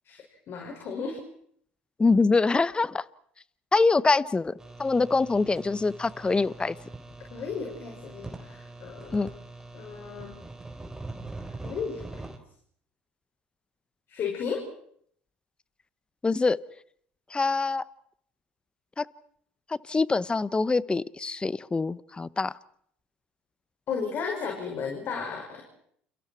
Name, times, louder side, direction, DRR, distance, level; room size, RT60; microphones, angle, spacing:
voice 1, 0.0-1.2 7.3-9.3 9.7-10.3 11.6-12.3 14.1-14.6 23.9-25.6, left 6 dB, 50° left, 1 dB, 6.3 m, -34 dB
voice 2, 2.0-3.0 3.7-4.5 4.8-6.8 9.1-9.3 16.2-16.6 17.3-17.8 19.0-19.1 19.7-22.6, left 3 dB, 20° left, 18 dB, 1.0 m, -24 dB
sound 1, 4.6-12.4, right 2 dB, 10° right, 4.3 m, -43 dB
30.0 x 29.0 x 4.6 m, 0.66 s
hypercardioid pair, 75°, 5 cm